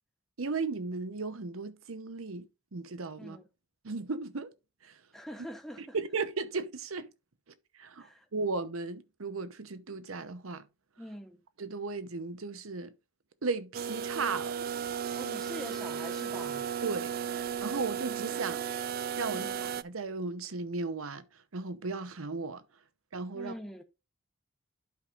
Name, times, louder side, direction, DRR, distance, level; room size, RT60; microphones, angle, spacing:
voice 1, 0.4-3.4 3.8-4.5 4.8-5.0 5.9-7.1 7.8-10.6 11.6-12.9 13.4-14.6 16.8-18.6 19.2-19.4 19.8-21.2 21.5-22.6 23.1-23.5, right 4 dB, 90° right, 0.9 m, -36 dB
voice 2, 5.1-6.0 8.0-8.3 11.0-11.4 15.1-16.7 19.3-19.6 23.3-23.8, equal, ahead, 0.9 m, -44 dB
sound 1, 13.7-19.8, right 8 dB, 45° right, 0.3 m, -35 dB
11.5 x 5.1 x 2.5 m
head